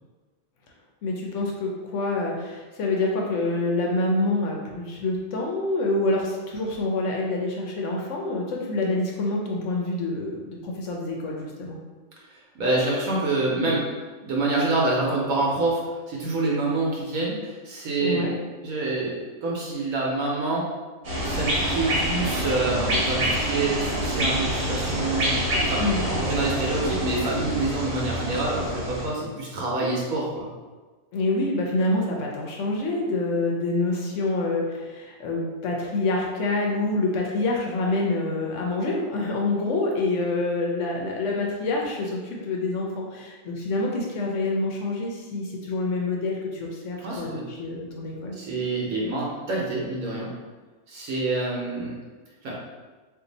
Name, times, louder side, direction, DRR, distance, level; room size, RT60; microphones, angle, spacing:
voice 1, 1.0-11.8 18.0-18.3 25.8-26.0 31.1-48.4, left 2 dB, 70° left, -1 dB, 0.9 m, -27 dB
voice 2, 12.6-13.8 14.2-15.8 16.1-18.3 18.6-20.7 21.2-25.4 25.7-25.8 26.1-30.5 47.0-47.4 48.4-50.3 50.9-51.9 52.4-52.5, right 2 dB, 80° right, -4 dB, 1.2 m, -26 dB
sound 1, 21.0-29.1, right 1 dB, 50° right, 1.0 m, -26 dB
2.6 x 2.6 x 3.8 m, 1.3 s
omnidirectional pair, 1.4 m